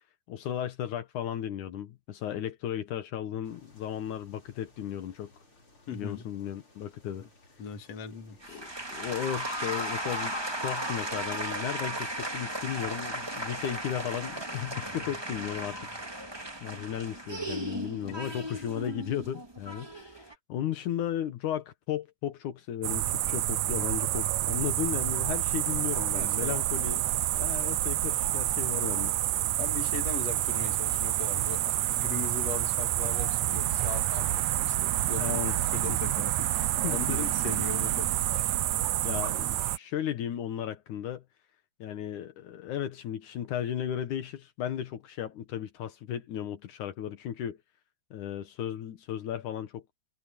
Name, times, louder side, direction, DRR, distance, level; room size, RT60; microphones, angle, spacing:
voice 1, 0.3-5.3 5.9-7.2 8.5-15.8 16.6-27.0 27.4-29.1 35.2-35.6 35.9-36.0 36.8-37.2 38.8-41.2 41.8-47.6 48.1-49.8, left 10 dB, 80° left, 2.8 m, -35 dB
sound 1, 3.4-15.0, left 2 dB, 40° left, 7.0 m, -61 dB
voice 2, 5.9-6.3 7.2-7.3 7.6-8.6 26.1-26.6 29.6-35.4 35.7-38.1, left 7 dB, 60° left, 2.9 m, -39 dB
sound 2, 8.4-20.3, right 1 dB, 10° right, 1.5 m, -36 dB
sound 3, 22.8-39.8, right 14 dB, 75° right, 2.2 m, -28 dB
omnidirectional pair, 3.5 m